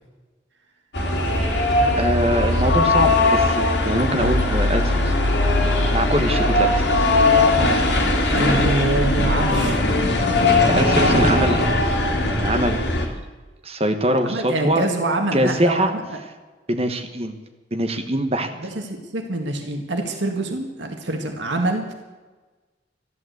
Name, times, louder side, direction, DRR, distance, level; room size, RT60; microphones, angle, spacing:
sound 1, 0.9-13.1, left 2 dB, 65° left, 2.7 m, -19 dB
voice 1, 2.0-5.1 5.9-7.0 10.6-11.6 12.2-13.1 13.6-14.8 15.3-15.9 16.7-17.3 17.7-18.5, right 1 dB, 35° right, 5 dB, 1.3 m, -23 dB
voice 2, 8.3-9.8 14.2-16.0 18.6-21.9, right 2 dB, 85° right, 3 dB, 1.8 m, -25 dB
13.5 x 11.0 x 8.0 m, 1.3 s
head